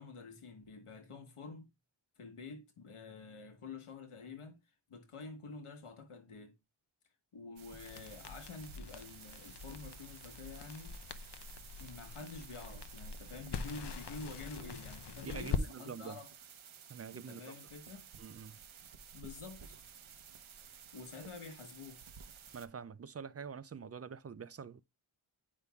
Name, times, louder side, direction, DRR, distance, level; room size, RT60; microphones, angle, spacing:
voice 1, 0.0-1.7 2.2-4.6 4.9-6.6 7.3-10.9 11.8-16.3 17.1-18.1 18.5-18.7 19.1-19.8 20.9-22.0, left 4 dB, 90° left, 1.3 m, -48 dB
sound 1, 7.6-22.7, right 7 dB, 75° right, 0.9 m, -54 dB
Crackle, 7.8-15.7, left 5 dB, 55° left, 0.7 m, -43 dB
voice 2, 15.2-16.2 16.9-17.6 18.2-18.6 21.2-21.3 22.5-24.8, right 6 dB, 35° right, 0.4 m, -46 dB
9.6 x 5.3 x 2.3 m
wide cardioid pair, 80°, 49 cm